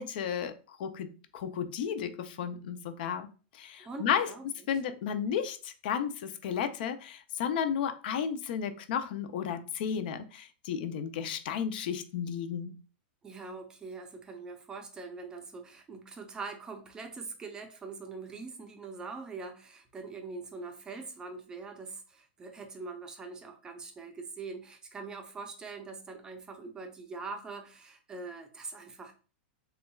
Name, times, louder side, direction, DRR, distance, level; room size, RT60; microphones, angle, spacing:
voice 1, 0.0-3.3 3.5-4.3 4.7-12.8, left 8 dB, 55° left, 0.5 m, -33 dB
voice 2, 3.8-4.4 13.2-29.1, right 4 dB, 10° right, 0.5 m, -43 dB
6.7 x 2.3 x 2.3 m
supercardioid pair, 160°, 6 cm